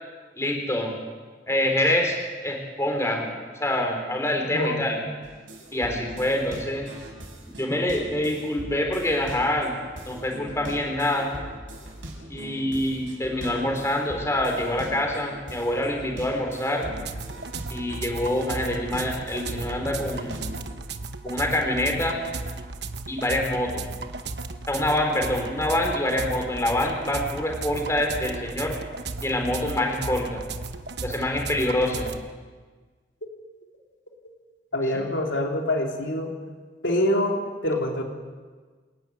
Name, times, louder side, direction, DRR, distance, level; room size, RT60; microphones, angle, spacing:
voice 1, 0.4-1.0 1.5-2.2 2.4-3.3 3.6-5.0 5.7-6.9 7.6-9.8 10.0-11.3 12.3-16.9 17.7-20.4 21.2-22.2 23.1-23.9 24.7-28.7 29.2-30.4 31.0-32.1, left 1 dB, 15° left, 2 dB, 3.6 m, -26 dB
voice 2, 4.5-4.8 34.7-36.3 36.8-38.0, left 1 dB, 85° left, 1 dB, 3.3 m, -25 dB
sound 1, 5.2-20.7, equal, 90° right, 6.3 m, -41 dB
sound 2, 16.8-32.2, right 3 dB, 65° right, 1.2 m, -35 dB
28.0 x 11.5 x 9.3 m, 1.4 s
head